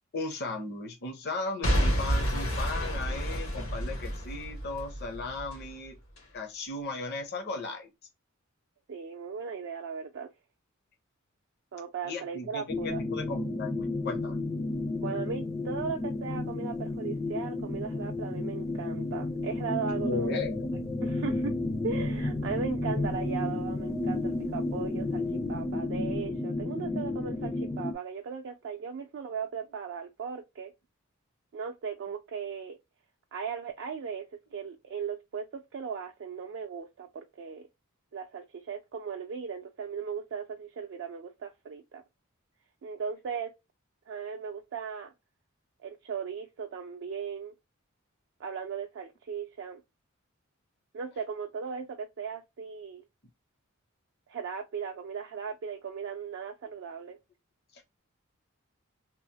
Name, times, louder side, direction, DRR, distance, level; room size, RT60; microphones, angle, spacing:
voice 1, 0.1-6.0 6.3-7.9 12.0-14.4 20.0-20.7 57.7-58.0, left 3 dB, 50° left, 0.6 m, -36 dB
Boom / Shatter / Crushing, 1.6-5.6 6.2-6.3, equal, 75° left, 1.0 m, -29 dB
voice 2, 8.9-10.3 11.7-13.0 15.0-20.4 21.0-21.5 21.8-30.7 31.5-32.8 33.3-34.3 34.5-37.7 38.1-42.0 42.8-43.5 44.1-45.1 45.8-47.5 48.4-49.8 50.9-53.0 54.3-57.2, right 6 dB, 60° right, 0.4 m, -37 dB
sound 1, 12.7-27.9, left 2 dB, 15° left, 0.3 m, -32 dB
2.9 x 2.0 x 2.7 m
head